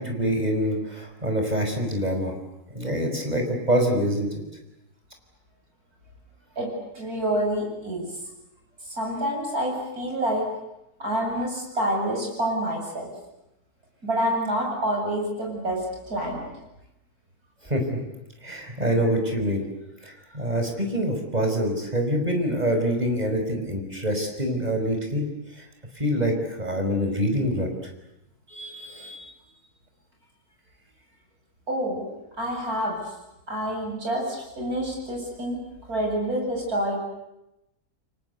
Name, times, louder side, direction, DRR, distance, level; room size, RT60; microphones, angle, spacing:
voice 1, 0.0-2.3 2.8-4.3 17.6-17.9 18.4-19.6 20.0-25.2 25.6-25.7 26.0-27.7 28.5-29.3, equal, 25° right, 3 dB, 5.3 m, -25 dB
voice 2, 6.6-8.1 8.9-10.4 11.0-13.1 14.0-16.5 31.7-32.0 32.4-33.0 33.5-35.6 35.9-37.0, right 1 dB, 70° right, 0 dB, 8.5 m, -27 dB
29.5 x 24.0 x 8.2 m, 0.91 s
omnidirectional pair, 1.7 m